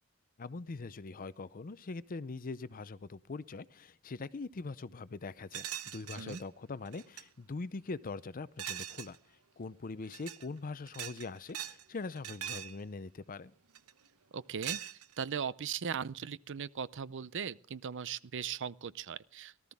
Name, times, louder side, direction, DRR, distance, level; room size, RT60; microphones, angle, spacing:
voice 1, 0.4-5.7 5.9-9.2 9.6-13.5, left 3 dB, 40° left, 0.5 m, -42 dB
sound 1, 5.5-6.4 6.9-7.2 8.6-9.2 10.0-10.5 10.9-11.8 12.1-12.8 13.7-14.1 14.6-15.3, right 10 dB, 80° right, 0.9 m, -41 dB
voice 2, 14.3-14.8 15.2-19.7, right 7 dB, 55° right, 0.6 m, -38 dB
18.0 x 13.5 x 3.6 m
head